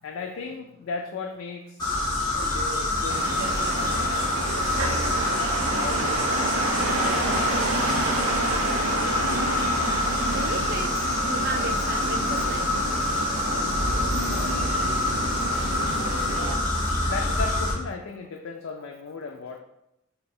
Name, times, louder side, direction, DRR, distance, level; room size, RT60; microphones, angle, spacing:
voice 1, 0.0-1.9 2.3-5.2 5.7-9.2 17.1-19.6, left 4 dB, 85° left, 2 dB, 0.4 m, -37 dB
sound 1, 1.8-17.7, left 2 dB, 20° left, 1.3 m, -26 dB
sound 2, 3.1-16.6, right 2 dB, 90° right, 0.6 m, -30 dB
voice 2, 10.2-11.0 11.3-12.8, right 3 dB, 45° right, 6 dB, 0.4 m, -33 dB
3.3 x 2.8 x 4.2 m, 0.84 s
head